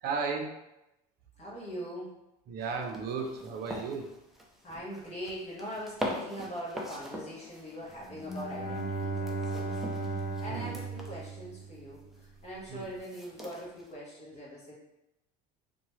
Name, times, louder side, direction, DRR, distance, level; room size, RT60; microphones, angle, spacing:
voice 1, 0.0-0.6 2.5-4.1 10.5-10.8 12.7-12.9, right 5 dB, 55° right, 2 dB, 0.6 m, -34 dB
voice 2, 1.4-2.1 4.6-9.8 10.4-14.7, equal, 35° left, -6 dB, 1.1 m, -42 dB
sound 1, 2.6-13.9, equal, ahead, 0.5 m, -43 dB
Bowed string instrument, 8.1-12.2, right 3 dB, 80° left, 1.1 m, -36 dB
2.8 x 2.3 x 3.0 m, 0.90 s
supercardioid pair, 105°, 19 cm